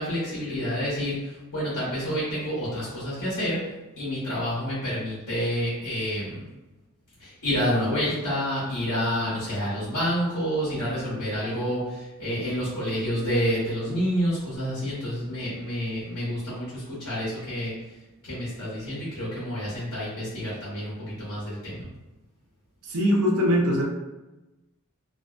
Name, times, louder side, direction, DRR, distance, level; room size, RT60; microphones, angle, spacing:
voice 1, 0.0-3.6 4.0-6.4 7.2-17.7 18.2-21.8, equal, 75° left, -10 dB, 1.1 m, -28 dB
voice 2, 22.9-23.8, equal, 75° right, 0 dB, 0.5 m, -21 dB
2.5 x 2.0 x 2.4 m, 1.1 s
head